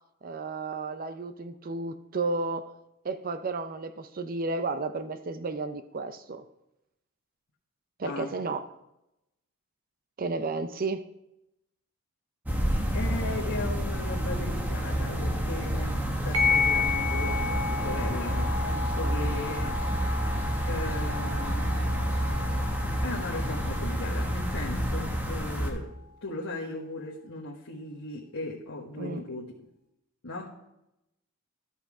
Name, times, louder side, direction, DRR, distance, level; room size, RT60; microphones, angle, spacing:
voice 1, 0.2-2.7 3.0-6.4 8.0-8.6 10.2-11.1 29.0-29.2, right 3 dB, 40° right, 10 dB, 0.5 m, -32 dB
voice 2, 8.0-8.4 12.9-20.1 20.6-21.9 23.0-29.5 30.2-30.6, left 2 dB, 70° left, -5 dB, 1.2 m, -37 dB
sound 1, 12.5-25.7, equal, 10° right, 1.0 m, -29 dB
sound 2, 16.3-25.3, left 5 dB, 70° right, 1.2 m, -33 dB
13.0 x 5.6 x 4.8 m, 0.88 s
head